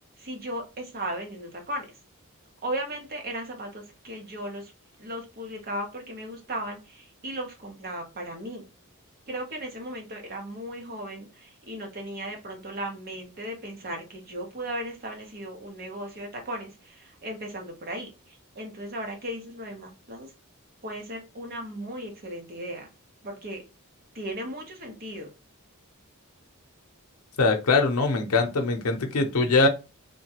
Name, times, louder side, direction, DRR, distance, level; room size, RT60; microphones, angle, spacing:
voice 1, 0.2-2.0 2.6-4.7 5.0-8.6 9.3-20.3 20.8-22.9 23.2-23.6 24.1-25.3, right 1 dB, 45° right, 0.9 m, -36 dB
voice 2, 27.4-29.7, left 3 dB, 75° left, 0.6 m, -22 dB
2.9 x 2.2 x 2.8 m
head